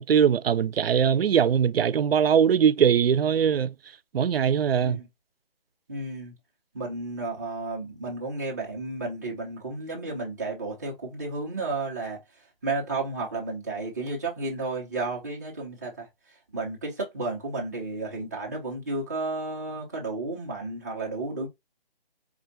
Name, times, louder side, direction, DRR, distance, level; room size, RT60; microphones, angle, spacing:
voice 1, 0.0-3.7 4.1-5.0, right 8 dB, 85° right, 0.5 m, -21 dB
voice 2, 5.9-6.3 6.7-12.2 12.6-16.1 16.5-21.5, right 3 dB, 20° right, 0.9 m, -32 dB
4.8 x 2.5 x 2.7 m
hypercardioid pair, 175°, 29 cm